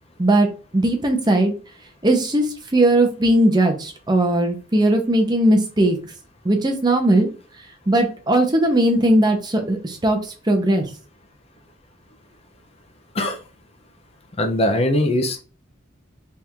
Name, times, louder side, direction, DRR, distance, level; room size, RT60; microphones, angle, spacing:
voice 1, 0.7-1.5 2.0-2.5 2.7-6.0 6.4-7.3 7.9-10.2 10.5-10.8, right 1 dB, 20° right, 3 dB, 0.7 m, -18 dB
voice 2, 14.4-15.4, left 1 dB, 30° left, 5 dB, 0.5 m, -20 dB
3.6 x 2.5 x 4.4 m, 0.35 s
head